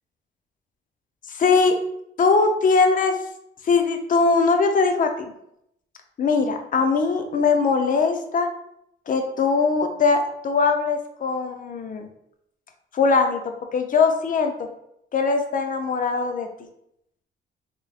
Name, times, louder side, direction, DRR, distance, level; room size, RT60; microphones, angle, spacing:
voice 1, 1.3-1.8 2.2-3.2 3.6-5.3 6.2-8.5 9.1-12.1 12.9-14.7 15.1-16.5, left 4 dB, 45° left, 6 dB, 0.5 m, -21 dB
3.9 x 2.9 x 2.4 m, 0.77 s
cardioid pair, 90°, 20 cm